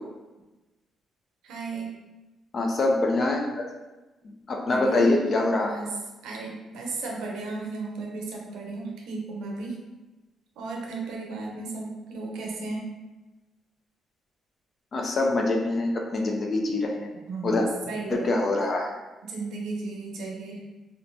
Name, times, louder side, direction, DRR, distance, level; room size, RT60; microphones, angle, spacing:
voice 1, 1.4-1.9 4.7-5.2 5.6-5.9 6.2-9.8 10.6-12.9 17.3-18.3 19.2-20.7, right 3 dB, 85° right, -1 dB, 0.6 m, -35 dB
voice 2, 2.5-3.6 4.2-5.8 14.9-17.1 17.4-17.7 18.1-18.9, left 2 dB, 45° left, 1 dB, 0.5 m, -24 dB
2.9 x 2.1 x 2.6 m, 1.1 s
cardioid pair, 90°, 0 cm